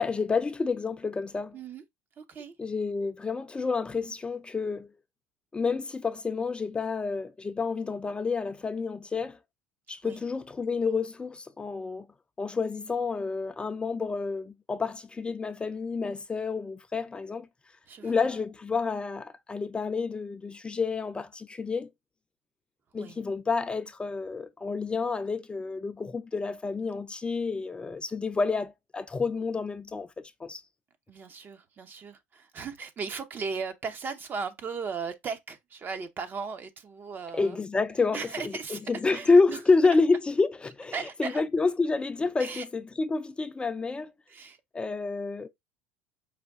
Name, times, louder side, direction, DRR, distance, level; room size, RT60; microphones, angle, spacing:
voice 1, 0.0-1.6 2.6-4.9 5.5-9.4 9.9-12.1 12.4-17.5 18.0-21.9 22.9-30.1 30.4-30.6 37.3-44.1 44.7-45.5, left 4 dB, 15° left, 0.4 m, -29 dB
voice 2, 1.5-1.8 2.2-2.5 10.0-10.2 17.9-18.3 23.0-23.2 31.1-37.6 38.1-38.8 39.1-39.6 40.9-41.4 42.4-42.6 44.3-44.6, right 5 dB, 35° right, 0.7 m, -37 dB
4.9 x 2.3 x 3.5 m
hypercardioid pair, 85°, 6 cm